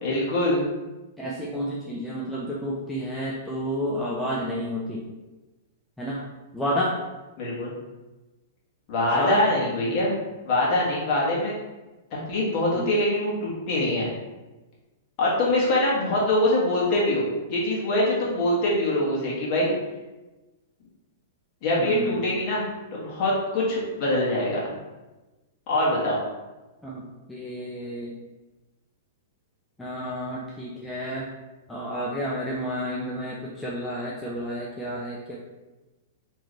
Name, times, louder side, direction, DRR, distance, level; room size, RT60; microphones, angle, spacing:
voice 1, 0.0-0.6 7.4-7.7 8.9-11.5 12.1-14.1 15.2-17.2 17.5-19.7 21.6-24.6 25.7-26.2, left 1 dB, 35° left, -5 dB, 1.4 m, -24 dB
voice 2, 1.2-5.1 6.0-6.2 6.5-7.0 9.1-9.4 12.8-12.9 21.8-22.3 26.8-27.0 27.3-28.1 29.8-31.3 31.7-35.4, equal, 5° left, -5 dB, 0.4 m, -30 dB
3.2 x 3.1 x 3.9 m, 1.1 s
hypercardioid pair, 155°, 0 cm